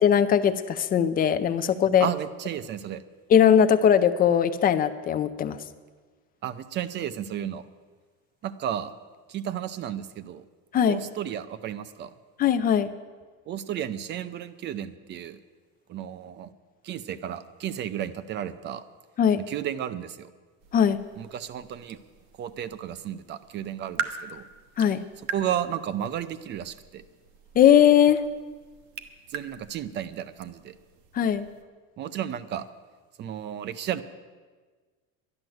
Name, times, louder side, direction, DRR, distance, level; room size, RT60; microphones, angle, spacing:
voice 1, 0.0-2.1 3.3-5.6 10.7-11.0 12.4-12.9 19.2-19.4 20.7-21.0 24.8-25.0 27.6-28.2 31.1-31.5, left 9 dB, 25° left, 10 dB, 0.5 m, -20 dB
voice 2, 2.0-3.0 6.4-7.7 8.4-8.9 9.3-10.4 10.9-12.1 13.5-15.4 15.9-16.5 16.8-18.8 19.4-20.3 21.2-22.0 22.4-24.4 25.3-27.0 29.3-30.8 32.0-32.7 33.2-34.0, right 10 dB, 35° right, 15 dB, 0.6 m, -33 dB
sound 1, 20.6-31.6, right 6 dB, 65° right, 1.1 m, -42 dB
12.0 x 11.0 x 7.8 m, 1.4 s
cardioid pair, 155°, 33 cm